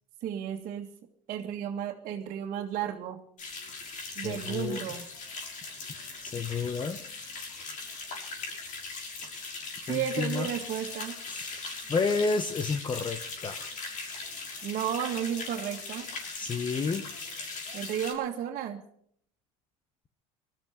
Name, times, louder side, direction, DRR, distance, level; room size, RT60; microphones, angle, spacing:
voice 1, 0.2-0.9 1.3-3.2 4.2-5.0 9.8-11.2 14.6-16.1 17.7-18.8, right 9 dB, 55° right, -2 dB, 2.1 m, -33 dB
sound 1, 3.4-18.1, left 4 dB, 50° left, 6.2 m, -39 dB
voice 2, 4.1-4.9 6.2-7.0 9.9-10.5 11.3-11.6 11.9-13.7 16.3-17.1, left 4 dB, 30° left, 10 dB, 1.3 m, -31 dB
19.5 x 13.5 x 5.2 m, 0.65 s
supercardioid pair, 90°, 17 cm